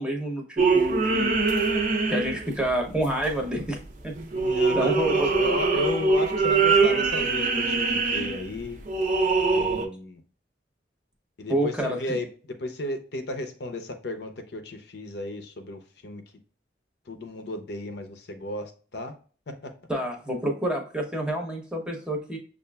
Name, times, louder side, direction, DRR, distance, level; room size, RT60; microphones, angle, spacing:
voice 1, 0.0-1.4 2.1-3.8 4.0-4.1 4.7-5.3 11.5-12.2 19.9-22.4, right 1 dB, 5° right, 0.8 m, -28 dB
sound 1, 0.6-2.7 3.0-3.7 4.1-9.8, right 4 dB, 45° right, 0.6 m, -23 dB
voice 2, 4.3-8.8 9.5-10.2 11.4-16.2 17.1-19.1 19.5-19.7, left 1 dB, 65° left, 0.6 m, -34 dB
6.5 x 2.5 x 2.2 m
head